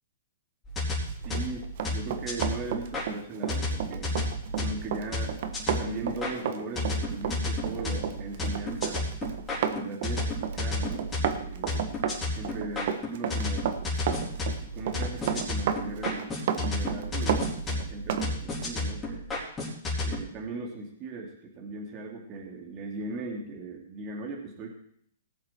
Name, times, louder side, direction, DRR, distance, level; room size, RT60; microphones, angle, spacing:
sound 1, 0.6-3.1 3.5-6.3 6.8-20.2, left 2 dB, 15° left, 4.3 m, -32 dB
voice 1, 1.2-4.2 4.6-5.3 5.8-9.0 9.7-10.2 10.6-12.0 12.3-13.7 14.6-19.2 20.0-24.7, right 3 dB, 30° right, 0 dB, 2.8 m, -38 dB
Run, 1.2-18.3 18.6-18.8, right 8 dB, 55° right, 1.3 m, -32 dB
18.5 x 7.5 x 4.5 m, 0.65 s
hypercardioid pair, 145°, 0 cm